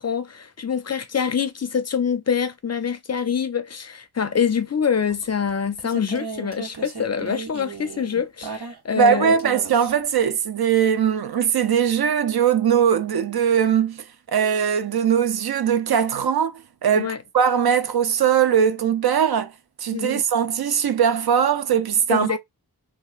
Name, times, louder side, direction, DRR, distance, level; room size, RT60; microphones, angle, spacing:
voice 1, 0.0-9.4 16.9-17.2 19.9-20.2 22.1-22.4, left 7 dB, 45° left, 0.4 m, -25 dB
sound 1, 5.1-9.0 9.4-10.1 11.4-11.5, right 4 dB, 90° right, 0.9 m, -35 dB
voice 2, 9.0-14.0 14.3-19.5 19.8-22.4, right 8 dB, 70° right, 0.5 m, -20 dB
3.0 x 2.3 x 2.3 m
wide cardioid pair, 60°, 39 cm